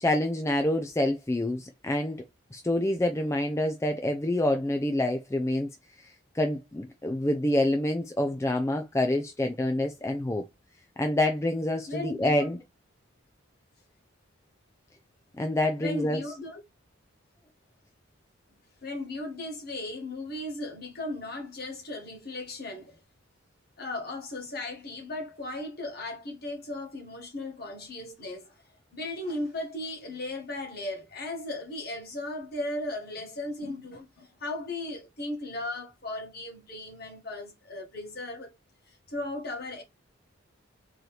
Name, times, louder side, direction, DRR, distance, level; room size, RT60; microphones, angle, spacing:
voice 1, 0.0-2.2 2.5-5.7 6.0-10.4 11.0-12.6 15.4-16.2, left 1 dB, 15° left, 0.3 m, -27 dB
voice 2, 11.9-12.6 15.8-16.6 18.8-23.0 23.8-28.6 28.9-38.5 38.9-39.8, left 2 dB, 45° left, 1.4 m, -36 dB
3.9 x 2.9 x 3.2 m
head